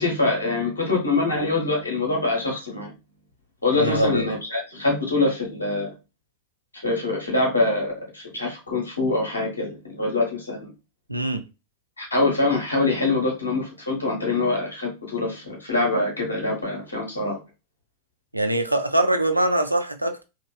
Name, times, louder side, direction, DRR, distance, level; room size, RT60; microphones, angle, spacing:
voice 1, 0.0-2.9 3.6-5.9 6.8-10.7 12.0-17.4, left 2 dB, 75° left, 0.9 m, -24 dB
voice 2, 3.7-4.2 11.1-11.4 18.3-20.2, right 1 dB, 85° right, 0.4 m, -23 dB
2.8 x 2.4 x 2.3 m
figure-of-eight pair, 90°, 0 cm